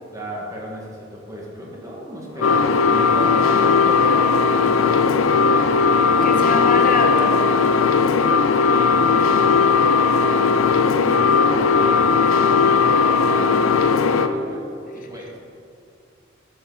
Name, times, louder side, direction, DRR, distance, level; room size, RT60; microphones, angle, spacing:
voice 1, 0.1-4.3 4.7-5.7 6.2-7.8 8.6-14.6 14.9-15.3, equal, 15° right, -3 dB, 1.8 m, -34 dB
sound 1, 2.4-14.3, left 5 dB, 85° left, 0.5 m, -17 dB
voice 2, 6.2-7.4, left 3 dB, 40° left, 3 dB, 0.9 m, -24 dB
11.5 x 7.6 x 4.0 m, 2.5 s
head